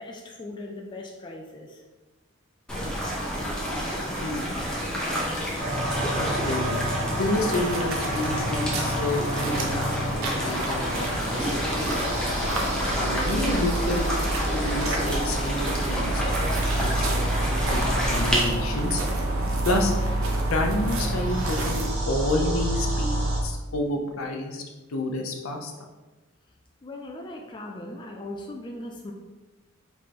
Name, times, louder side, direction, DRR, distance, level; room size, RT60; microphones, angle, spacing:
voice 1, 0.0-1.8 26.8-29.1, left 1 dB, 20° left, 1 dB, 0.3 m, -39 dB
sound 1, 2.7-18.4, equal, 5° left, 0.9 m, -30 dB
sound 2, 5.6-23.4, right 1 dB, 75° right, 1.3 m, -28 dB
voice 2, 6.2-6.8 7.2-12.1 12.9-16.2 16.7-19.0 19.6-19.9 20.4-23.2 23.4-24.6 24.9-25.7, left 2 dB, 90° left, 2 dB, 0.7 m, -29 dB
sound 3, 7.3-21.9, right 2 dB, 90° right, 0.7 m, -35 dB
5.1 x 3.3 x 2.9 m, 1.2 s
head